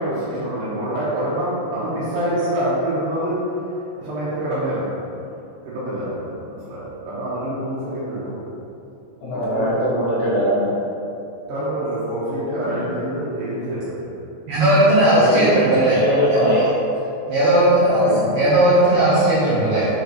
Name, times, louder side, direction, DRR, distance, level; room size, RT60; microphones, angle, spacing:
voice 1, 0.0-3.4 4.0-4.8 5.6-6.1 6.5-8.3 9.3-9.7 11.5-14.0 17.9-18.5, right 1 dB, 70° right, -10 dB, 2.2 m, -26 dB
voice 2, 9.2-10.8 15.2-16.6, equal, 80° left, -7 dB, 3.2 m, -21 dB
voice 3, 14.5-16.0 16.3-16.7 17.3-18.1 18.3-19.9, right 1 dB, 90° right, -9 dB, 2.2 m, -16 dB
7.1 x 5.0 x 3.1 m, 2.8 s
omnidirectional pair, 5.9 m